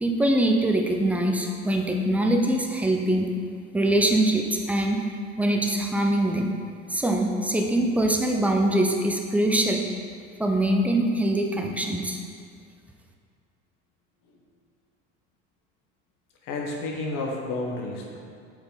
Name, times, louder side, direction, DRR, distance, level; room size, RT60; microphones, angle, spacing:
voice 1, 0.0-3.3 3.7-5.0 5.4-6.5 6.9-9.8 10.4-12.2, right 1 dB, 5° right, 2 dB, 0.7 m, -23 dB
voice 2, 16.4-18.2, left 2 dB, 55° left, 0 dB, 1.4 m, -31 dB
6.7 x 4.4 x 4.0 m, 2.1 s
hypercardioid pair, 85°, 38 cm